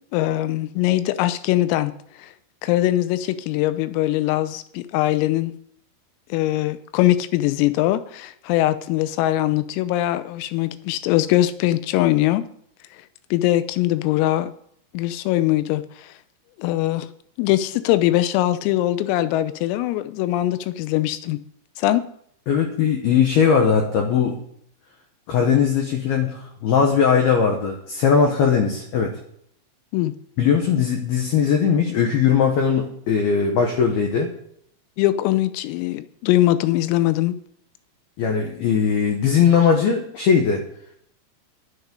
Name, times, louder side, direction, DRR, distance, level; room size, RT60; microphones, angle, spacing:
voice 1, 0.1-1.9 2.2-2.3 2.6-5.5 6.3-12.5 13.3-14.5 14.9-16.1 16.6-17.1 17.4-21.4 21.8-22.0 29.9-30.2 35.0-37.4, left 15 dB, 85° left, 3.4 m, -21 dB
voice 2, 22.5-24.4 25.3-29.1 30.4-34.3 38.2-40.6, left 6 dB, 70° left, 2.5 m, -19 dB
11.0 x 11.0 x 5.2 m
omnidirectional pair, 5.9 m